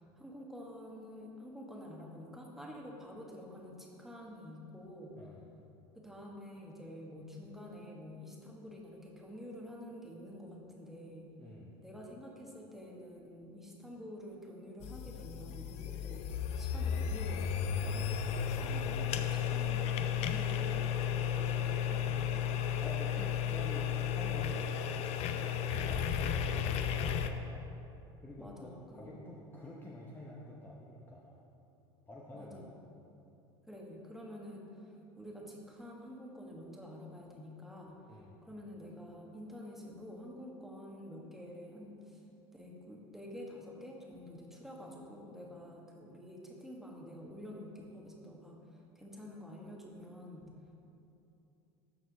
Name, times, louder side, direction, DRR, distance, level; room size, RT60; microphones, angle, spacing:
voice 1, 0.0-5.2 5.9-11.3 11.8-22.4 28.4-29.1 32.3-32.8 33.6-42.2 42.5-50.5, equal, ahead, -2 dB, 1.4 m, -48 dB
voice 2, 11.4-11.7 18.8-19.3 22.8-27.6 28.2-31.4 32.1-32.7 38.1-38.3, left 1 dB, 15° left, -4 dB, 0.9 m, -49 dB
sound 1, 14.8-27.3, left 8 dB, 55° left, 0.5 m, -34 dB
13.0 x 4.4 x 3.4 m, 2.8 s
hypercardioid pair, 90°, 13 cm